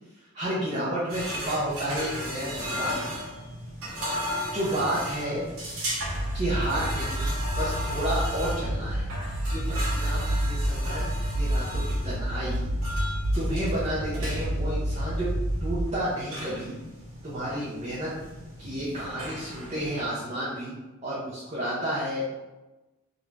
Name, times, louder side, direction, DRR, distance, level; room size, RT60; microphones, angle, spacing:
voice 1, 0.2-2.9 4.5-5.5 6.3-7.3 7.6-9.1 9.5-11.1 11.3-12.7 13.3-15.3 15.6-16.8 17.2-18.1 18.6-20.7 21.0-22.4, right 1 dB, 30° right, -7 dB, 0.4 m, -31 dB
sound 1, 1.1-20.1, equal, 85° right, 0.9 m, -36 dB
sound 2, 6.0-15.9, equal, 80° left, 0.5 m, -29 dB
2.4 x 2.1 x 3.1 m, 1.1 s
head